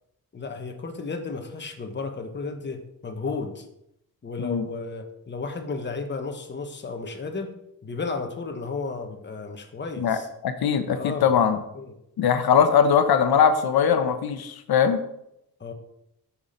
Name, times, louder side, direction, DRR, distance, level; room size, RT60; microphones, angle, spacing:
voice 1, 0.3-3.6 4.2-7.5 7.8-10.3 10.9-11.3 11.7-11.9 15.6-15.7, left 4 dB, 30° left, 5 dB, 1.2 m, -33 dB
voice 2, 10.0-11.6 12.2-15.0, left 7 dB, 85° left, 9 dB, 0.9 m, -21 dB
9.7 x 5.9 x 5.2 m, 0.80 s
wide cardioid pair, 150°, 36 cm